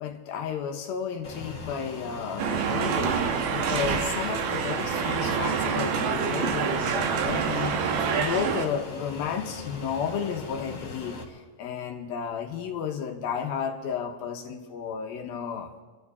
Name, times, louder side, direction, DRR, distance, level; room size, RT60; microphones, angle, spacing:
voice 1, 0.0-3.2 3.5-7.8 8.1-15.7, left 7 dB, 75° left, 3 dB, 3.0 m, -33 dB
Fixed-wing aircraft airplane, 1.2-11.2, left 3 dB, 50° left, 2.2 m, -40 dB
sound 1, 2.4-8.7, right 6 dB, 90° right, 3.1 m, -27 dB
26.5 x 12.0 x 4.1 m, 1.4 s
omnidirectional pair, 4.4 m